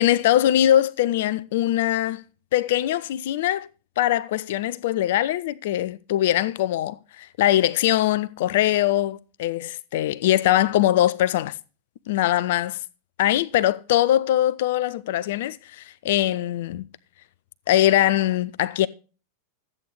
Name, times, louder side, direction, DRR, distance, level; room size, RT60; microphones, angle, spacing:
voice 1, 0.0-2.2 2.5-3.7 4.0-11.5 12.1-12.8 13.2-16.9 17.7-18.9, left 13 dB, 55° left, 0.5 m, -22 dB
12.5 x 8.5 x 4.8 m
figure-of-eight pair, 90°, 0 cm